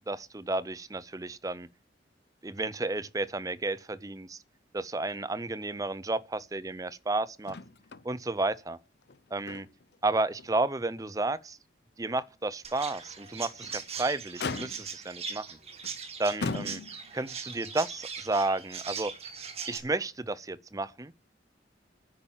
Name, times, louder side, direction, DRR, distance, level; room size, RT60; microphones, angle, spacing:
voice 1, 0.1-1.7 2.4-4.4 4.7-7.6 8.0-8.8 9.3-9.7 10.0-11.6 12.0-15.6 16.2-16.8 17.1-19.1 19.7-21.1, right 2 dB, 20° right, 0.5 m, -32 dB
Motor vehicle (road), 7.4-8.1 8.4-8.5 9.0-10.0 10.4-10.5 11.1-11.2 13.4-13.8 14.4-15.1 15.8-16.0 16.4-17.2 18.3-18.4, left 4 dB, 65° left, 0.7 m, -38 dB
Chirp tweet, 12.6-19.8, right 6 dB, 35° right, 1.8 m, -40 dB
10.0 x 8.7 x 7.2 m
head